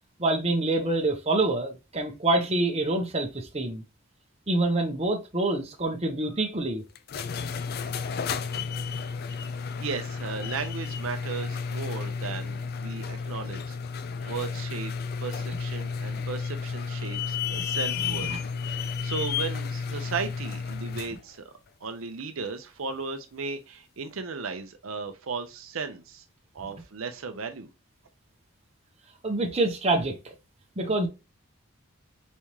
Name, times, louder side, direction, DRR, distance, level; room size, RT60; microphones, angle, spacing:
voice 1, 0.2-3.8 4.5-6.8 17.5-17.6 18.3-18.4 29.2-30.2 30.8-31.1, right 2 dB, 30° right, 0.9 m, -26 dB
sound 1, 6.9-21.2, left 5 dB, 50° left, 0.3 m, -32 dB
voice 2, 9.8-13.8 14.3-14.9 15.2-18.3 18.7-21.5 21.8-26.2 26.5-27.7, right 5 dB, 80° right, 0.6 m, -36 dB
4.2 x 3.6 x 3.1 m
head